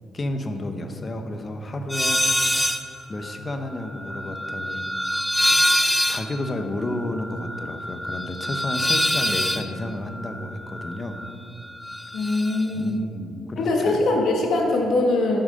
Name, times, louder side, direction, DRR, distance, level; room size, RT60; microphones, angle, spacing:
voice 1, 0.1-2.2 3.1-4.8 5.4-5.6 6.1-11.2 12.7-14.0, left 1 dB, 35° left, 6 dB, 1.0 m, -31 dB
sound 1, 1.9-2.8 3.2-11.3 11.6-12.6, left 1 dB, 5° left, 0.5 m, -25 dB
voice 2, 12.1-13.0 13.6-15.4, left 2 dB, 70° left, 0 dB, 1.8 m, -22 dB
11.0 x 6.3 x 5.3 m, 2.5 s
cardioid pair, 90°, 0 cm